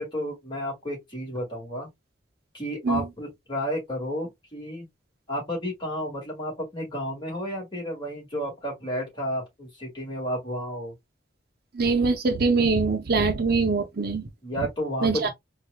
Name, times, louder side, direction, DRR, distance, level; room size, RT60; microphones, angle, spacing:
voice 1, 0.0-1.9 2.5-4.9 5.3-10.9 14.4-15.3, equal, 25° left, 1.9 m, -32 dB
voice 2, 11.7-14.3 14.6-14.7 15.0-15.3, right 4 dB, 55° right, 0.7 m, -23 dB
4.4 x 2.5 x 2.3 m
head